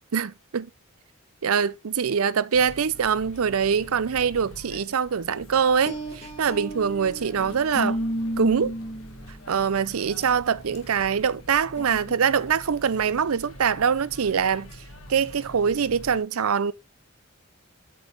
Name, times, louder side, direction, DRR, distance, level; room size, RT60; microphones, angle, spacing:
voice 1, 0.1-0.7 1.4-8.0 8.4-8.7 9.5-14.7 15.1-16.7, right 7 dB, 85° right, 0.5 m, -24 dB
sound 1, 2.5-16.2, equal, 80° left, 2.0 m, -46 dB
sound 2, 5.9-9.5 10.0-10.2 10.7-11.0 11.8-12.1, right 1 dB, 30° left, 1.7 m, -32 dB
8.9 x 7.7 x 3.4 m
head